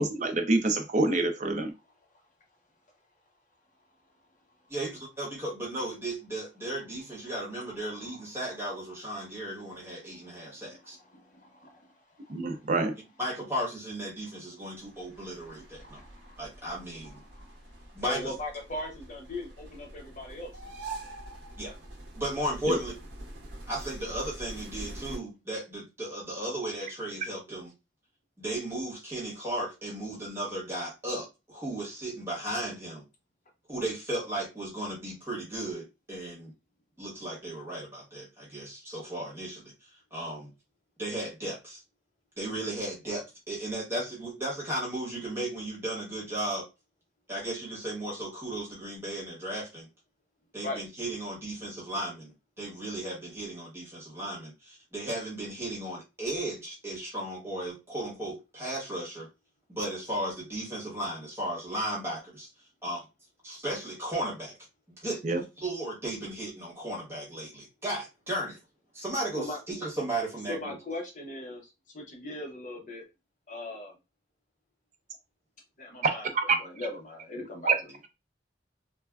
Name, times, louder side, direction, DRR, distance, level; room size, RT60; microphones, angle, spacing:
voice 1, 0.0-1.7 12.3-13.0 22.7-22.8 65.2-65.4 76.0-76.4 77.6-77.8, right 3 dB, 40° right, 6 dB, 0.4 m, -26 dB
voice 2, 4.7-11.0 13.2-16.0 16.4-17.2 17.9-18.3 21.6-21.7 22.1-22.9 23.7-27.7 28.4-33.0 33.7-36.5 37.0-40.5 41.0-41.8 42.4-46.7 47.3-49.9 50.5-59.3 59.7-62.5 62.8-63.0 63.4-64.5 65.0-65.2 65.6-68.6 68.9-70.8, right 1 dB, 15° right, -5 dB, 1.1 m, -35 dB
voice 3, 10.2-10.6 11.1-11.9 15.2-16.4 17.3-17.5 18.0-20.5 50.6-50.8 69.4-69.6 70.5-73.0 73.5-73.9 75.8-77.7, left 1 dB, 45° left, 1 dB, 0.7 m, -39 dB
sound 1, 14.8-25.2, right 2 dB, 80° right, 0.6 m, -45 dB
3.2 x 2.1 x 2.3 m, 0.26 s
head